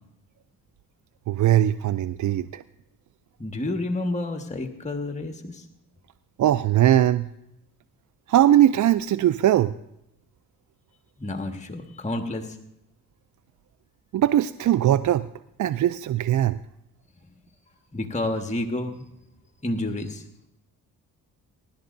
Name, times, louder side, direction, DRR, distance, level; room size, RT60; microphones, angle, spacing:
voice 1, 1.3-2.6 6.4-7.3 8.3-9.7 14.1-15.3 15.6-16.6, right 12 dB, 45° right, 15 dB, 0.5 m, -20 dB
voice 2, 3.4-5.6 11.2-12.6 17.9-19.0 19.6-20.2, left 2 dB, 15° left, 5 dB, 1.5 m, -30 dB
23.0 x 11.5 x 2.6 m, 0.84 s
hypercardioid pair, 50°, 41 cm